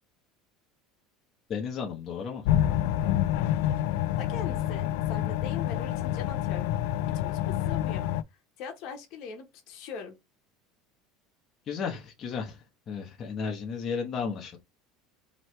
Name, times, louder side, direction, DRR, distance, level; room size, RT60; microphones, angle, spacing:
voice 1, 1.5-2.5 11.7-14.6, left 6 dB, 25° left, 0.9 m, -34 dB
sound 1, 2.4-8.2, left 12 dB, 70° left, 0.3 m, -27 dB
voice 2, 4.2-6.7 7.1-8.1 8.6-10.1, left 6 dB, 50° left, 1.1 m, -41 dB
4.5 x 3.1 x 3.2 m
cardioid pair, 170°, 0 cm